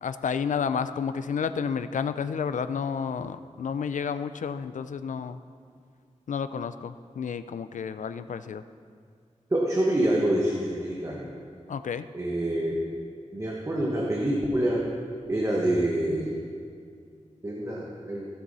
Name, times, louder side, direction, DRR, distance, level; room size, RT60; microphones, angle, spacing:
voice 1, 0.0-5.4 6.3-8.6 11.7-12.1, left 6 dB, 85° left, 12 dB, 0.4 m, -31 dB
voice 2, 9.5-11.3 12.1-12.8 13.3-14.8 15.3-16.3 17.4-18.3, right 1 dB, 25° right, -3 dB, 1.2 m, -26 dB
15.5 x 6.9 x 4.1 m, 2.3 s
wide cardioid pair, 110°, 13 cm